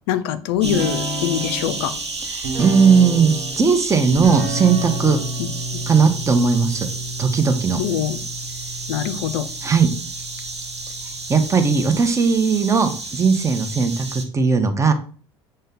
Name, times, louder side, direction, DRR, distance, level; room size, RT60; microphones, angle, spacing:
voice 1, 0.1-1.9 5.4-5.8 7.8-8.2 8.9-9.5, left 10 dB, 65° left, 11 dB, 0.4 m, -24 dB
sound 1, 0.6-12.1, right 1 dB, 60° right, 1.0 m, -31 dB
sound 2, 0.6-14.2, right 3 dB, 90° right, 0.6 m, -32 dB
voice 2, 2.2-5.2 5.9-6.9 7.2-7.8 9.6-9.9 11.3-14.1 14.3-14.9, right 5 dB, 20° right, 8 dB, 0.8 m, -17 dB
6.4 x 2.2 x 3.7 m, 0.41 s
figure-of-eight pair, 60°, 14 cm